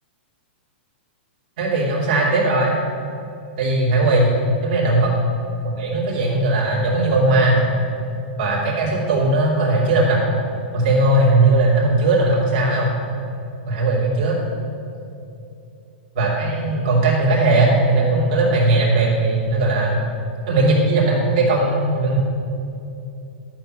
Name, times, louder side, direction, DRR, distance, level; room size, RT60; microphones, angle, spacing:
voice 1, 1.6-2.7 3.6-4.3 4.6-5.1 5.6-7.7 8.4-10.2 10.7-12.9 13.7-14.4 16.1-20.0 20.5-22.2, right 2 dB, 40° right, -4 dB, 3.0 m, -18 dB
12.0 x 6.2 x 6.6 m, 2.7 s
hypercardioid pair, 165°, 6 cm